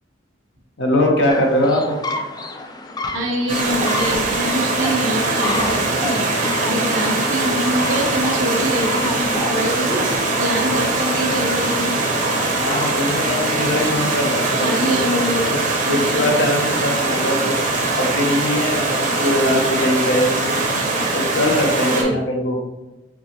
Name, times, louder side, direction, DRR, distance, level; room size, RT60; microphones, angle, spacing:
voice 1, 0.8-1.9 12.5-17.5 17.9-20.6 21.1-22.6, left 1 dB, 65° left, 1 dB, 0.8 m, -21 dB
sound 1, 1.3-14.3, left 2 dB, 20° left, 0.3 m, -32 dB
voice 2, 3.1-12.0 14.5-15.5 15.8-16.2 21.8-22.1, equal, 75° right, 0 dB, 0.9 m, -24 dB
Stream, 3.5-22.0, right 2 dB, 45° right, 0.8 m, -21 dB
4.5 x 3.1 x 2.9 m, 1.1 s
head